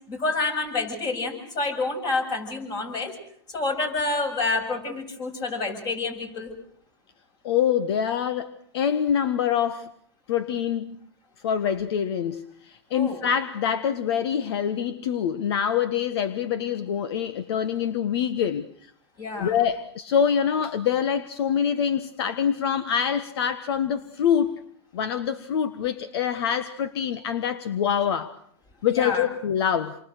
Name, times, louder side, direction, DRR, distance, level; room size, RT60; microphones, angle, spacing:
voice 1, 0.1-3.1 3.5-6.5 12.9-13.2 19.2-19.6 28.9-29.3, left 3 dB, 30° left, 7.8 m, -28 dB
voice 2, 7.4-9.9 10.3-11.0 11.4-18.6 19.4-24.6 24.9-28.4 28.8-30.0, left 8 dB, 65° left, 1.4 m, -25 dB
29.0 x 24.0 x 6.6 m
hypercardioid pair, 125°, 14 cm